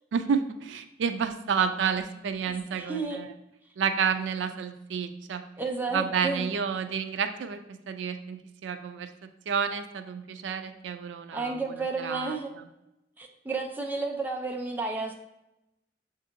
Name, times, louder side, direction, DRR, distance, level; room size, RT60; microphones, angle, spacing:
voice 1, 0.1-3.3 3.8-5.4 5.9-7.6 7.9-9.1 9.5-11.6 12.0-12.4, right 6 dB, 85° right, 9 dB, 0.4 m, -30 dB
voice 2, 2.5-3.2 5.6-6.5 11.3-12.5 13.2-15.1, right 3 dB, 10° right, 1 dB, 0.4 m, -32 dB
6.7 x 2.6 x 2.6 m, 0.89 s
head